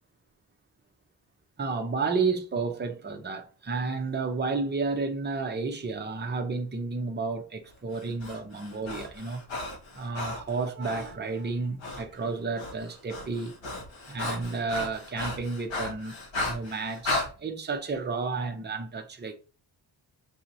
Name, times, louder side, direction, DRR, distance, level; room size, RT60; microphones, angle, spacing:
voice 1, 1.6-9.4 9.9-13.5 14.1-16.2 16.5-19.3, right 4 dB, 25° right, 0.7 m, -31 dB
Breathing, 7.9-11.1 11.8-12.0 12.3-17.3, left 2 dB, 85° left, 1.5 m, -35 dB
6.2 x 2.8 x 2.6 m
wide cardioid pair, 100°, 44 cm